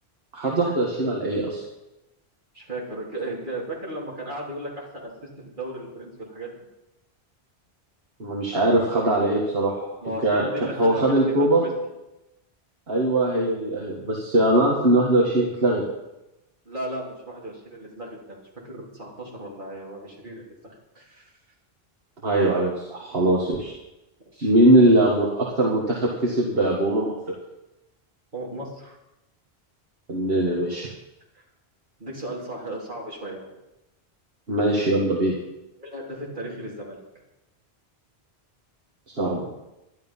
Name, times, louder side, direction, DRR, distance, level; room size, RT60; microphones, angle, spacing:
voice 1, 0.3-1.6 8.2-9.9 10.2-10.4 10.8-11.6 12.9-15.8 22.2-23.7 24.4-27.2 30.1-30.9 34.5-35.4 39.1-39.5, right 1 dB, 65° right, -3 dB, 2.1 m, -21 dB
voice 2, 2.5-5.3 5.6-6.5 10.0-11.7 16.7-21.3 24.3-24.5 28.3-29.0 31.3-31.4 32.0-33.5 35.8-37.0, right 1 dB, 50° right, -4 dB, 3.6 m, -35 dB
12.0 x 11.5 x 5.6 m, 0.95 s
omnidirectional pair, 1.1 m